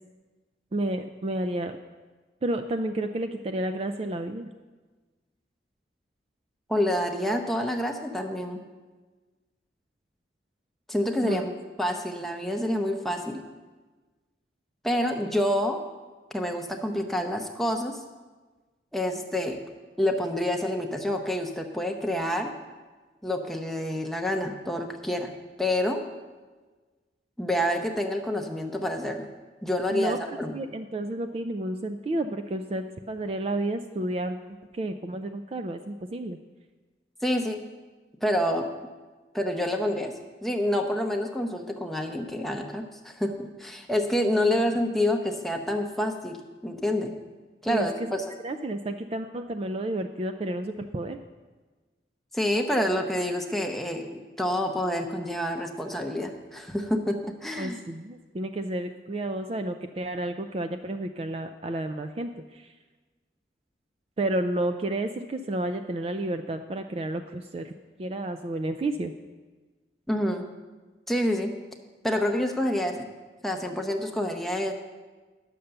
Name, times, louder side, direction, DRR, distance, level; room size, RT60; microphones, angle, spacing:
voice 1, 0.7-1.8 2.4-4.5 11.2-11.4 29.9-30.2 30.5-34.5 34.7-36.4 44.4-44.6 47.7-48.1 48.4-51.2 57.6-62.7 64.2-67.7 68.0-69.1, right 1 dB, 35° right, 8 dB, 0.3 m, -31 dB
voice 2, 6.7-8.6 10.9-11.5 11.8-13.4 14.8-15.8 16.3-18.0 18.9-19.6 20.0-22.5 23.2-25.3 25.6-26.0 27.4-29.3 29.6-30.5 37.2-37.6 38.2-38.7 39.3-40.1 40.4-47.1 47.6-48.2 52.3-57.8 70.1-70.5 71.1-71.5 72.0-73.1 73.4-74.7, left 1 dB, ahead, 2 dB, 0.7 m, -27 dB
10.0 x 6.6 x 6.8 m, 1.3 s
head